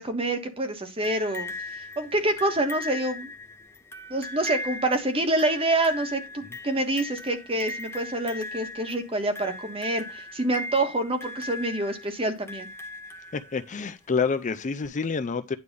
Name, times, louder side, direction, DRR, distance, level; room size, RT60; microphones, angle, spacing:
voice 1, 0.0-3.3 4.1-12.7, right 1 dB, 25° right, 1.5 m, -27 dB
sound 1, 1.0-13.9 14.8-14.9, left 1 dB, 10° left, 0.9 m, -39 dB
voice 2, 13.3-15.6, left 5 dB, 35° left, 0.4 m, -28 dB
9.7 x 3.3 x 6.8 m
head